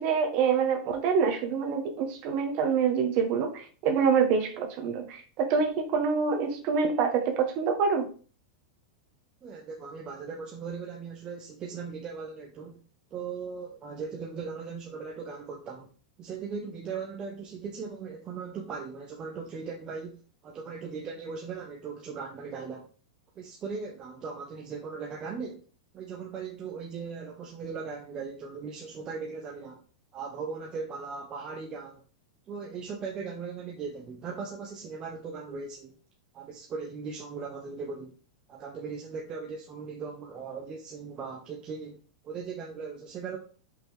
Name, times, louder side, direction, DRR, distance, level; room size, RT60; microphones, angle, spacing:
voice 1, 0.0-8.1, right 6 dB, 35° right, 4 dB, 1.4 m, -26 dB
voice 2, 9.4-12.8 13.1-15.9 16.2-22.9 23.4-25.6 25.9-29.8 30.1-32.0 32.5-36.0 36.3-38.1 38.5-42.0 42.2-43.4, right 5 dB, 20° right, 0 dB, 0.9 m, -38 dB
5.5 x 4.1 x 4.6 m, 0.39 s
supercardioid pair, 165°, 4 cm